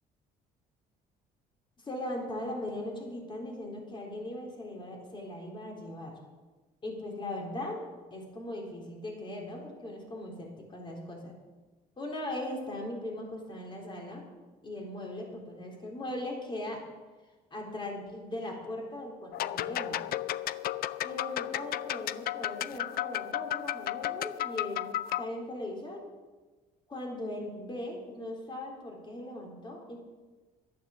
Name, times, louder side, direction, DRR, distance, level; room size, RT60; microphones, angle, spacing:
voice 1, 1.8-6.2 6.8-7.8 8.1-11.3 12.0-14.2 14.6-16.8 17.5-20.0 21.0-24.9 25.2-26.0 26.9-30.0, left 1 dB, 30° left, 0 dB, 3.7 m, -39 dB
sound 1, 19.3-25.3, left 13 dB, 60° left, 0.4 m, -33 dB
12.0 x 9.2 x 7.2 m, 1.3 s
cardioid pair, 110°, 17 cm